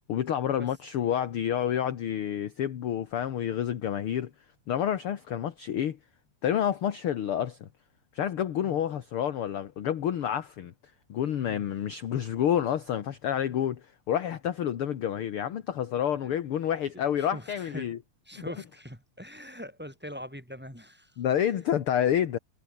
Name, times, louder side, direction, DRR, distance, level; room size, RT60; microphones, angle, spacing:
voice 1, 0.1-4.3 4.7-6.0 6.4-7.7 8.1-10.7 11.1-18.0 18.3-18.4 21.2-22.4, left 10 dB, 55° left, 1.9 m, -29 dB
voice 2, 17.2-17.9 18.2-21.5, equal, 5° right, 4.8 m, -43 dB
omnidirectional pair, 3.6 m